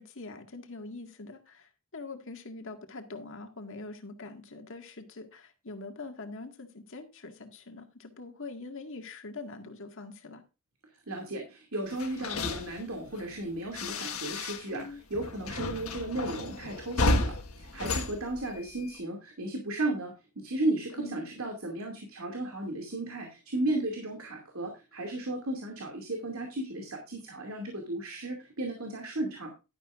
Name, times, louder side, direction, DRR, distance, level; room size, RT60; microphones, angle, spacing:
voice 1, 0.0-10.4 14.7-15.0 20.9-21.3, left 3 dB, 65° left, 5 dB, 1.8 m, -43 dB
voice 2, 11.1-29.5, right 2 dB, 75° right, 2 dB, 2.5 m, -34 dB
sound 1, 11.9-14.9 15.1-19.0, left 2 dB, 80° left, 1.6 m, -33 dB
11.5 x 11.0 x 2.5 m, 0.29 s
head